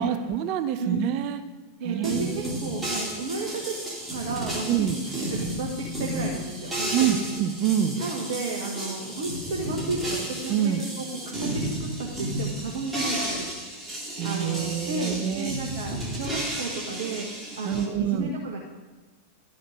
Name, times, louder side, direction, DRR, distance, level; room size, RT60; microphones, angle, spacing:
voice 1, 0.0-1.4 1.8-2.6 4.7-5.0 6.9-8.0 10.5-10.8 14.2-15.5 17.6-18.3, right 10 dB, 40° right, 10 dB, 0.6 m, -26 dB
voice 2, 1.8-3.8 4.1-7.2 8.0-13.5 14.2-17.3 17.6-18.6, right 2 dB, 60° right, -1 dB, 1.3 m, -32 dB
sound 1, 2.0-17.9, right 1 dB, 10° right, 2.5 m, -33 dB
11.5 x 5.1 x 5.2 m, 1.2 s
figure-of-eight pair, 90°, 0 cm